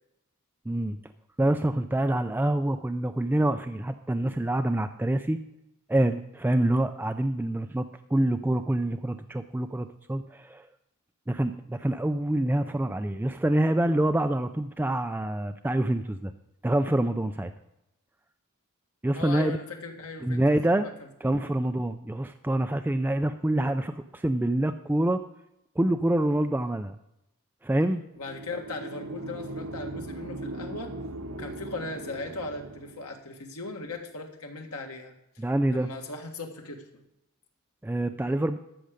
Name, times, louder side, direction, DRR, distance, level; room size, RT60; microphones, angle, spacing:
voice 1, 0.7-1.0 1.4-5.4 5.9-10.7 11.3-16.3 16.6-17.5 19.0-19.6 20.2-20.9 21.2-25.2 25.8-27.0 27.6-28.0 35.4-35.9 37.8-38.6, right 1 dB, 10° right, 8 dB, 0.3 m, -26 dB
voice 2, 19.1-20.9 21.3-21.5 28.2-30.9 31.3-37.0, left 3 dB, 90° left, 3 dB, 1.7 m, -38 dB
sound 1, 28.2-33.1, right 2 dB, 85° right, 1.0 m, -39 dB
13.5 x 6.4 x 5.1 m, 0.85 s
head